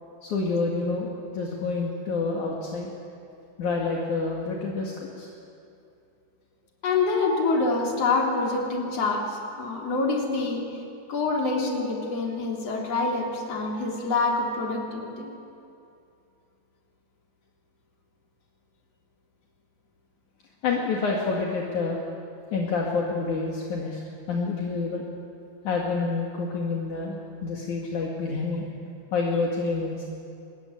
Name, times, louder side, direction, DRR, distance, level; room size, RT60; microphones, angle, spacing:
voice 1, 0.2-2.9 3.6-5.3 20.6-22.0 22.5-24.0 24.3-25.0 25.6-28.6 29.1-30.1, left 4 dB, 65° left, -2 dB, 3.5 m, -28 dB
voice 2, 6.8-10.7 11.1-15.3, left 3 dB, 45° left, -1 dB, 4.3 m, -26 dB
24.5 x 21.5 x 9.9 m, 2.6 s
omnidirectional pair, 3.9 m